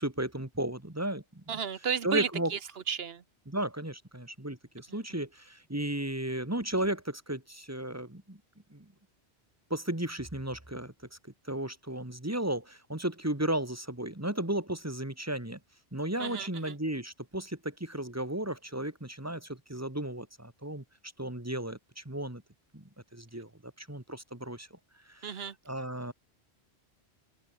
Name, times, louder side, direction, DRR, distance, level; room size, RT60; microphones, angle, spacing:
voice 1, 0.0-1.6 2.0-2.5 3.5-8.4 8.7-8.8 9.7-10.9 11.5-15.6 15.9-20.8 21.2-22.4 22.7-22.8 23.1-23.5 23.8-24.7 25.1-26.1, right 1 dB, 15° right, 2.2 m, -34 dB
voice 2, 1.5-2.6 2.9-3.2 16.2-16.7 25.2-25.5, right 7 dB, 65° right, 1.2 m, -33 dB
open air
omnidirectional pair, 1.1 m